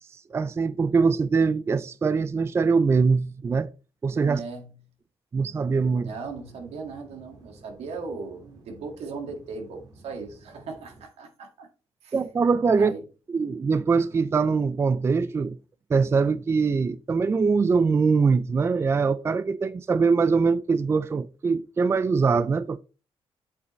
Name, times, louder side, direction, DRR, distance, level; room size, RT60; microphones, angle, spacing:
voice 1, 0.1-3.7 4.0-4.4 5.3-6.1 12.1-12.9 13.3-15.6 15.9-22.8, right 5 dB, 25° right, 0.4 m, -23 dB
voice 2, 4.2-4.7 6.0-11.7 12.0-12.2 12.8-13.0, right 4 dB, 85° right, 1.9 m, -38 dB
sound 1, 5.6-11.1, right 2 dB, 40° right, 2.0 m, -52 dB
8.2 x 7.2 x 3.1 m
cardioid pair, 120°, 10 cm